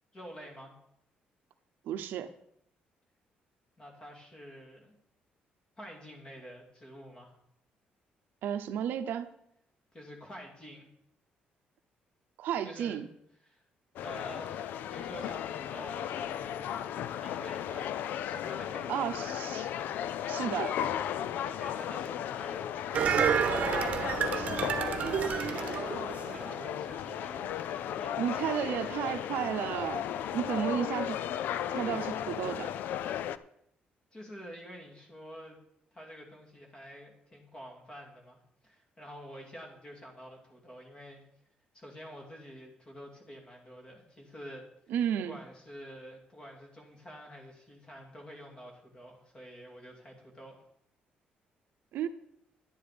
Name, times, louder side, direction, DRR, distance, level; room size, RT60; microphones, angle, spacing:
voice 1, 0.1-0.7 3.8-5.0 5.8-7.4 9.9-10.9 12.6-13.0 13.4-13.6 14.0-19.4 21.4-22.8 25.2-27.4 28.0-28.3 34.1-35.6 35.9-41.2 41.7-50.6, equal, 25° left, 2.7 m, -48 dB
voice 2, 1.8-2.3 8.4-9.3 12.4-13.1 18.9-19.7 20.3-20.8 24.3-24.7 28.2-30.0 30.3-31.2 31.7-32.7 44.9-45.4 51.9-52.1, right 9 dB, 75° right, 0.8 m, -33 dB
sound 1, 14.0-33.4, left 10 dB, 70° left, 0.5 m, -35 dB
sound 2, 22.9-26.7 27.1-27.2, right 7 dB, 45° right, 1.1 m, -30 dB
11.0 x 10.0 x 5.1 m
cardioid pair, 180°, 3 cm